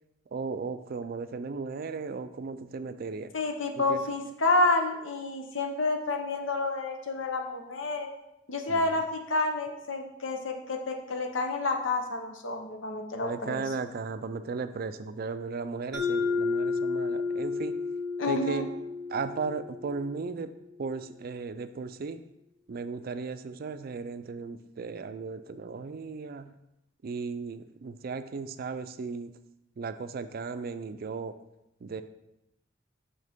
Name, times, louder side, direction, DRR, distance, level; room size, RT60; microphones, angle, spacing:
voice 1, 0.3-3.3 3.8-4.0 8.7-9.0 13.2-17.8 18.3-18.7 19.1-22.2 22.7-26.5 27.0-29.3 29.8-31.3 31.8-32.0, right 4 dB, 50° right, 11 dB, 0.4 m, -36 dB
voice 2, 3.3-8.1 8.5-13.6 18.2-18.7, left 2 dB, 85° left, 4 dB, 0.9 m, -29 dB
Mallet percussion, 15.9-20.5, left 4 dB, ahead, 1.4 m, -32 dB
6.4 x 5.8 x 3.6 m, 0.86 s
head